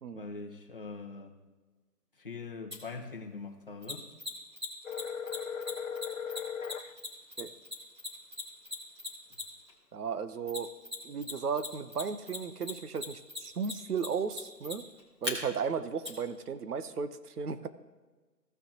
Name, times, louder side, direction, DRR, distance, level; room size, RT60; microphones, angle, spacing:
voice 1, 0.1-1.3 2.2-4.1, left 4 dB, 35° left, 1 dB, 1.1 m, -42 dB
Mechanisms, 2.7-2.8 3.8-9.7 10.5-11.3 11.6-15.3 16.0-16.1, left 3 dB, 15° right, 1.3 m, -38 dB
sound 1, 4.8-6.9, left 7 dB, 55° left, 0.5 m, -37 dB
voice 2, 9.9-10.7 11.0-14.8 15.2-17.7, right 6 dB, 65° right, 12 dB, 0.8 m, -35 dB
16.5 x 6.4 x 2.9 m, 1.3 s
figure-of-eight pair, 170°, 50 cm